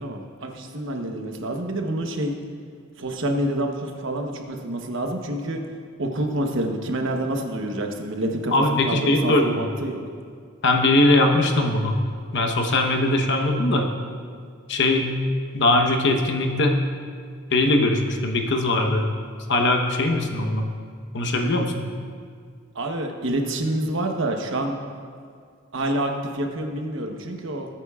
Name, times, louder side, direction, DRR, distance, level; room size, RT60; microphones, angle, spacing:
voice 1, 0.0-2.3 3.0-5.6 6.0-10.0 22.7-24.8 25.7-27.7, right 1 dB, 65° right, 3 dB, 1.1 m, -27 dB
voice 2, 8.5-9.7 10.6-11.9 12.3-13.9 14.7-15.1 15.5-16.8 17.5-19.0 19.5-20.7 21.1-21.8, left 2 dB, 60° left, 3 dB, 1.1 m, -20 dB
20.5 x 8.9 x 2.4 m, 2.1 s
head